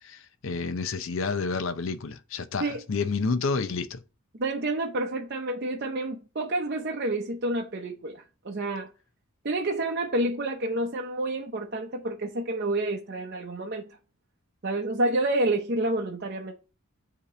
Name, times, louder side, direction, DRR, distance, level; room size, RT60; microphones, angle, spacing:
voice 1, 0.0-4.0, left 4 dB, 65° left, 0.5 m, -29 dB
voice 2, 4.4-8.9 9.4-14.0 14.6-16.5, right 2 dB, 50° right, 0.6 m, -29 dB
8.4 x 2.9 x 4.8 m
head